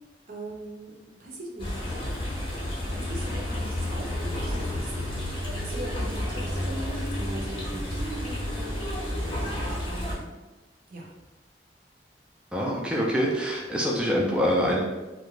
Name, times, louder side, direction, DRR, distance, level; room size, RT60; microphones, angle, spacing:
voice 1, 0.3-2.5 2.8-5.0 5.4-9.3 9.9-10.4 10.9-11.1, right 1 dB, 50° right, -2 dB, 0.6 m, -41 dB
sound 1, 1.6-10.1, left 1 dB, 30° left, 0.7 m, -31 dB
voice 2, 12.5-14.8, equal, 5° right, -4 dB, 0.3 m, -25 dB
2.4 x 2.1 x 3.0 m, 1.1 s
head